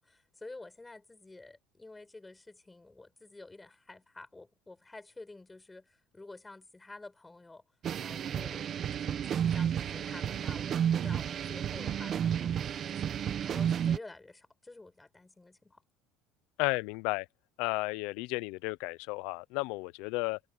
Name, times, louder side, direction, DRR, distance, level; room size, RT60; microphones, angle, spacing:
voice 1, 0.0-7.6 8.0-8.6 8.9-15.8, left 2 dB, 10° left, 6.8 m, -50 dB
sound 1, 7.8-14.0, right 9 dB, 35° right, 1.6 m, -31 dB
voice 2, 16.6-17.3 17.6-20.4, left 24 dB, 75° left, 0.7 m, -33 dB
cardioid pair, 155°, 0 cm